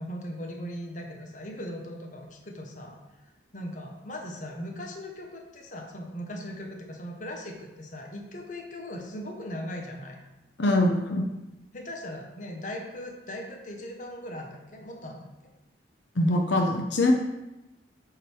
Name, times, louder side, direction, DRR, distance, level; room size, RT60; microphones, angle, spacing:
voice 1, 0.0-3.0 3.5-10.2 11.7-15.3, equal, 45° left, 1 dB, 1.0 m, -39 dB
voice 2, 10.6-11.3 16.2-17.1, left 1 dB, 75° left, 2 dB, 0.8 m, -23 dB
8.4 x 4.0 x 4.5 m, 0.99 s
head